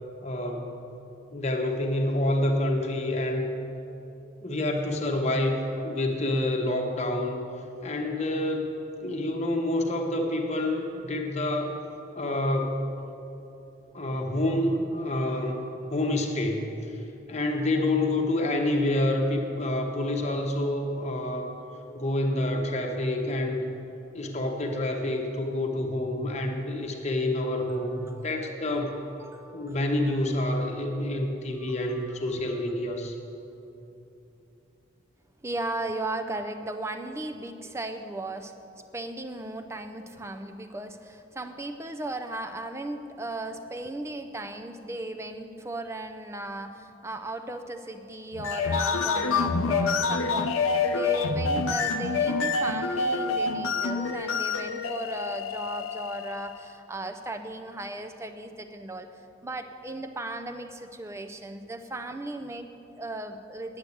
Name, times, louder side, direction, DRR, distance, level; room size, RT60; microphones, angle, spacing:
voice 1, 0.2-0.9 1.3-3.5 4.4-5.6 5.8-7.4 7.8-8.7 9.0-11.8 12.2-12.9 13.9-15.6 15.9-16.7 17.3-21.5 21.9-23.7 24.1-28.9 29.5-33.1, left 1 dB, 35° left, 2 dB, 1.0 m, -28 dB
voice 2, 27.7-29.9 30.3-30.4 31.6-32.7 35.4-38.5 38.9-63.8, right 2 dB, 15° right, 7 dB, 0.4 m, -36 dB
sound 1, 48.3-56.6, left 4 dB, 90° left, 0.6 m, -27 dB
9.4 x 8.1 x 8.4 m, 3.0 s
head